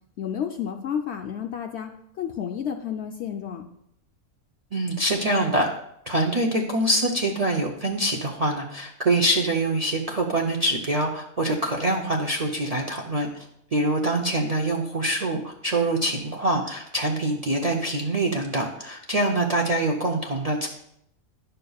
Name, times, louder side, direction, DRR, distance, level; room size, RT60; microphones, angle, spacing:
voice 1, 0.2-3.7, left 8 dB, 65° left, 4 dB, 0.7 m, -31 dB
voice 2, 4.7-5.7 6.1-13.5 13.7-20.7, right 1 dB, 45° right, 0 dB, 0.5 m, -24 dB
10.5 x 6.6 x 2.3 m, 0.75 s
omnidirectional pair, 1.5 m